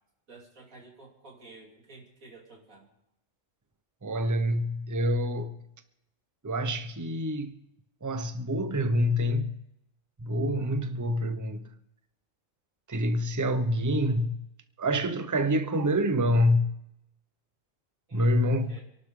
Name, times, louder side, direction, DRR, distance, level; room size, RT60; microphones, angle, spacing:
voice 1, 0.3-2.9 18.1-18.8, right 3 dB, 90° right, 3.6 m, -52 dB
voice 2, 4.0-5.5 6.4-7.6 8.0-9.5 10.2-11.7 12.9-14.4 14.8-16.7 18.1-18.8, equal, 15° right, 0.8 m, -26 dB
27.5 x 11.5 x 3.8 m
omnidirectional pair, 1.4 m